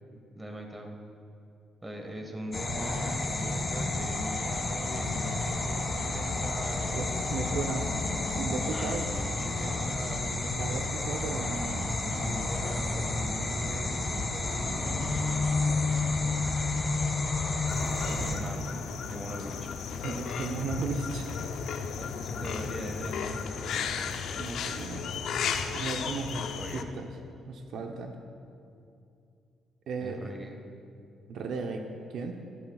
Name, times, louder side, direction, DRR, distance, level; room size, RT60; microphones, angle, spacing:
voice 1, 0.1-1.0 1.8-7.1 8.6-10.6 12.0-16.4 18.0-19.7 21.9-24.2 26.4-26.9 30.0-30.6, right 1 dB, 15° right, 2 dB, 1.6 m, -41 dB
sound 1, 2.5-18.3, left 3 dB, 30° left, 1.8 m, -30 dB
voice 2, 6.9-7.9 8.4-9.0 10.5-12.5 18.2-18.3 20.0-21.3 24.4-25.2 25.7-26.4 26.7-27.1 27.5-28.1 29.9-30.3 31.3-31.8 32.1-32.4, right 4 dB, 75° right, 3 dB, 0.8 m, -35 dB
sound 2, 17.7-26.8, left 6 dB, 75° left, 0.6 m, -34 dB
15.0 x 11.5 x 2.4 m, 2.6 s
cardioid pair, 90°, 0 cm